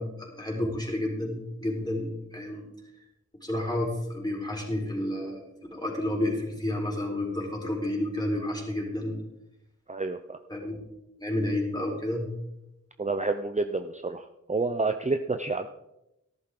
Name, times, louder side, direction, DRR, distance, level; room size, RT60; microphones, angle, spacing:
voice 1, 0.0-2.6 3.4-5.4 5.7-9.1 10.5-10.8 11.2-12.3, left 1 dB, 15° left, -1 dB, 4.2 m, -30 dB
voice 2, 9.9-10.4 13.0-15.7, right 3 dB, 25° right, 7 dB, 0.6 m, -29 dB
13.5 x 11.0 x 3.8 m, 0.89 s
wide cardioid pair, 45°, 29 cm